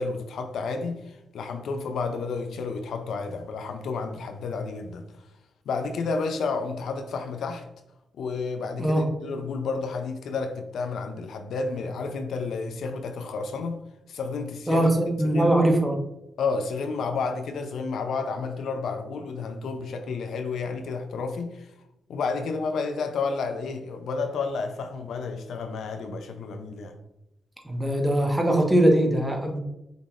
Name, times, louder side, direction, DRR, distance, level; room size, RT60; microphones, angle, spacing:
voice 1, 0.0-5.1 5.7-7.7 8.2-13.8 14.1-14.9 15.2-15.6 16.4-21.7 22.1-27.0, left 4 dB, 70° left, 0.5 m, -31 dB
voice 2, 14.7-16.0 27.6-29.6, right 1 dB, 15° right, 1.2 m, -21 dB
5.8 x 3.4 x 2.4 m
hypercardioid pair, 45°, 0 cm